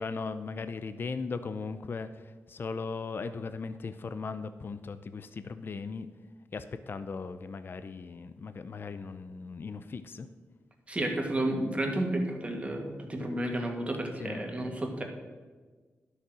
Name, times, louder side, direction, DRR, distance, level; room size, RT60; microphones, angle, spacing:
voice 1, 0.0-6.1 6.5-10.3 14.2-14.4, left 4 dB, 45° left, 11 dB, 0.5 m, -38 dB
voice 2, 10.9-15.0, right 1 dB, 25° right, 2 dB, 2.0 m, -31 dB
11.5 x 6.6 x 6.1 m, 1.4 s
wide cardioid pair, 95°, 5 cm